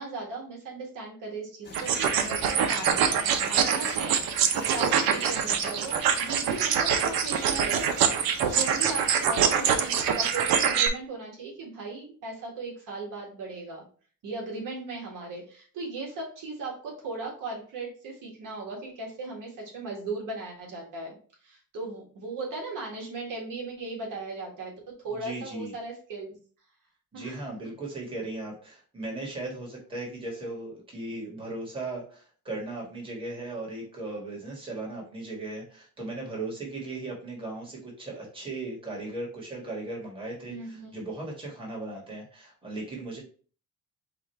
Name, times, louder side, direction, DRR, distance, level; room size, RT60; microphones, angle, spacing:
voice 1, 0.0-8.0 8.4-13.8 14.2-21.1 21.4-26.3 27.1-27.4 40.5-41.0, right 3 dB, 65° right, -1 dB, 1.6 m, -37 dB
sound 1, 1.6-10.5, left 5 dB, 30° left, 0.7 m, -43 dB
sound 2, 1.7-10.9, right 7 dB, 85° right, 0.7 m, -25 dB
voice 2, 25.1-25.7 27.1-43.2, right 2 dB, 15° right, -3 dB, 1.4 m, -37 dB
4.9 x 2.4 x 4.3 m, 0.42 s
cardioid pair, 155°, 34 cm